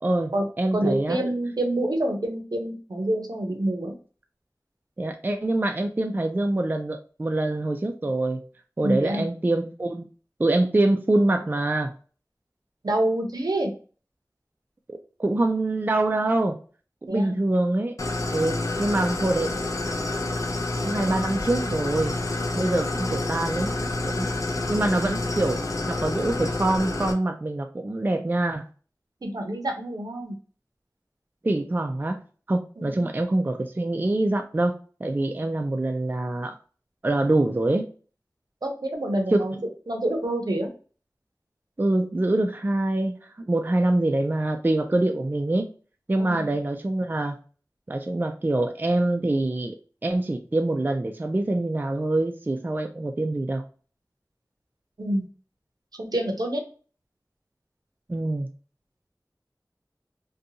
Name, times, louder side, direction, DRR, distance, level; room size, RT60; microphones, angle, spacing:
voice 1, 0.0-1.2 5.0-8.4 8.8-10.1 10.4-11.9 14.9-16.6 17.1-17.9 18.3-19.5 20.8-22.2 22.5-23.7 24.0-24.3 24.7-28.7 31.4-32.2 32.5-34.8 35.0-36.5 37.0-37.8 39.3-39.4 41.8-43.2 43.5-45.7 46.1-47.4 47.9-49.7 50.0-53.6 58.1-58.5, right 2 dB, 30° right, 5 dB, 0.3 m, -25 dB
voice 2, 0.7-3.9 8.8-9.2 12.8-13.7 17.1-17.4 29.2-30.4 32.8-33.1 38.6-39.5 39.9-40.7 46.2-46.4 55.0-55.3 56.0-56.6, right 1 dB, 75° right, 3 dB, 0.6 m, -27 dB
Idling, 18.0-27.1, left 2 dB, 55° left, 0.5 m, -28 dB
2.6 x 2.2 x 2.7 m, 0.38 s
wide cardioid pair, 45°, 7 cm